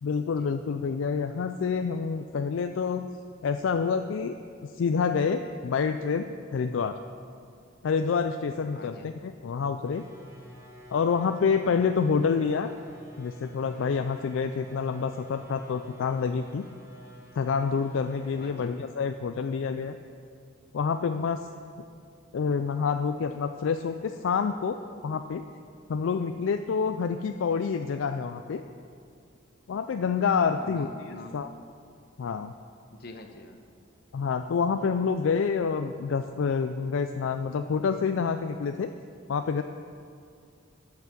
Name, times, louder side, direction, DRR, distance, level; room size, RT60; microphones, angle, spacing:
voice 1, 0.0-3.1 3.4-4.4 4.7-7.0 7.8-10.1 10.9-12.7 13.2-16.7 17.4-20.0 20.7-21.5 22.3-24.8 25.0-25.4 25.9-28.6 29.7-30.9 31.3-31.5 32.2-32.5 34.1-38.9 39.3-39.6, left 5 dB, 70° left, 8 dB, 0.4 m, -27 dB
voice 2, 8.7-9.1 18.4-18.7 30.5-31.4 32.9-33.6, left 2 dB, 50° left, 5 dB, 1.0 m, -44 dB
sound 1, 9.8-18.7, equal, 15° right, 2.7 m, -50 dB
14.0 x 5.8 x 6.1 m, 2.4 s
head